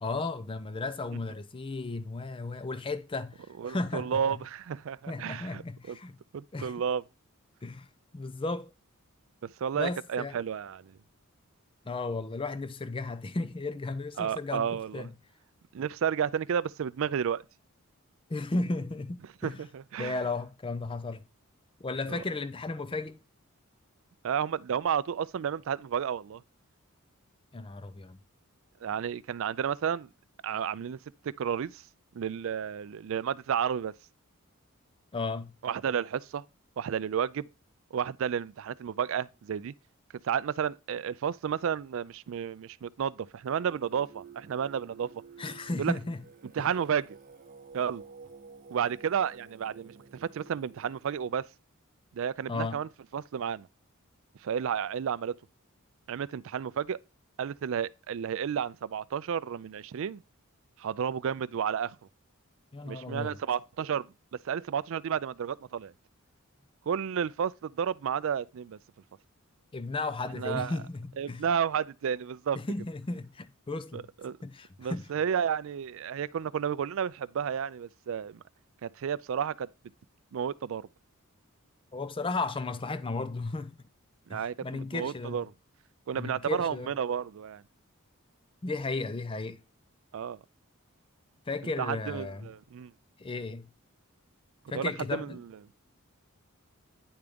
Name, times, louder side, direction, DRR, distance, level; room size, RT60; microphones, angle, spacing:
voice 1, 0.0-4.2 5.1-6.2 6.5-6.7 7.6-7.9 8.1-8.7 9.7-10.4 11.9-14.7 14.9-15.1 18.3-19.6 20.0-21.2 21.8-23.2 27.5-28.2 35.1-35.6 45.4-46.2 46.6-46.7 52.5-52.8 62.7-63.4 69.7-71.4 72.5-74.1 74.4-75.1 81.9-83.7 84.3-85.5 86.1-86.9 88.6-89.6 91.5-92.5 93.2-93.7 94.7-95.4, left 3 dB, 25° left, 0.5 m, -34 dB
voice 2, 3.6-5.6 5.9-6.0 6.3-7.0 9.6-11.0 14.2-15.1 15.7-17.4 19.4-20.1 22.1-22.2 24.2-26.4 28.8-30.1 30.4-31.0 31.2-31.8 32.1-33.9 35.6-36.4 36.8-37.5 37.9-39.7 40.2-45.2 45.8-45.9 46.6-47.2 47.7-48.0 48.7-51.4 52.1-53.7 54.4-55.3 56.1-57.0 57.4-60.2 60.8-62.0 62.8-64.1 64.4-65.9 66.9-68.8 70.3-70.7 71.2-72.6 73.9-74.4 74.8-78.4 78.8-79.7 80.3-80.9 84.3-85.5 86.1-87.6 90.1-90.4 91.8-92.9 94.7-95.5, right 8 dB, 65° right, 0.3 m, -32 dB
Singing, 43.4-51.3, right 5 dB, 40° right, 0.7 m, -52 dB
9.6 x 3.5 x 5.1 m
head